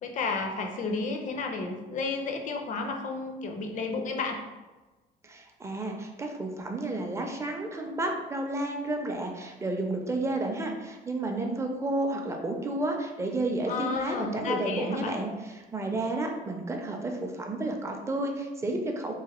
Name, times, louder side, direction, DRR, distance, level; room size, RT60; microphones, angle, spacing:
voice 1, 0.0-4.4 13.7-15.2, left 4 dB, 50° left, 3 dB, 0.5 m, -32 dB
voice 2, 5.2-19.1, right 2 dB, 15° right, 2 dB, 0.4 m, -31 dB
3.0 x 2.1 x 2.9 m, 1.2 s
cardioid pair, 110°, 17 cm